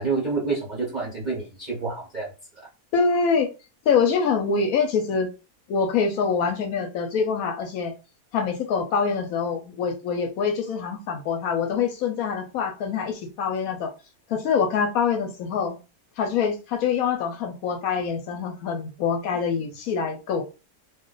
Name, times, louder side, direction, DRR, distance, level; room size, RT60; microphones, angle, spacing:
voice 1, 0.0-2.3 2.6-2.7, right 4 dB, 45° right, -4 dB, 0.5 m, -28 dB
voice 2, 2.9-3.5 3.9-5.3 5.7-7.9 8.3-13.9 14.3-15.8 16.2-20.4, left 6 dB, 70° left, 3 dB, 0.9 m, -25 dB
2.4 x 2.3 x 3.7 m, 0.31 s
omnidirectional pair, 1.7 m